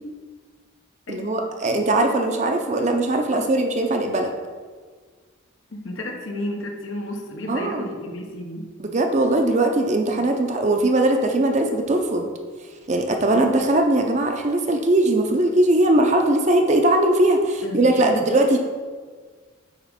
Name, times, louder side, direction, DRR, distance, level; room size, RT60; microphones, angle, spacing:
voice 1, 1.1-4.3 7.5-7.9 8.8-12.3 12.9-18.6, right 1 dB, 35° right, 4 dB, 0.6 m, -20 dB
voice 2, 5.7-8.7 10.2-10.3 17.6-18.3, left 1 dB, 80° left, 2 dB, 1.0 m, -32 dB
7.2 x 3.1 x 5.1 m, 1.5 s
head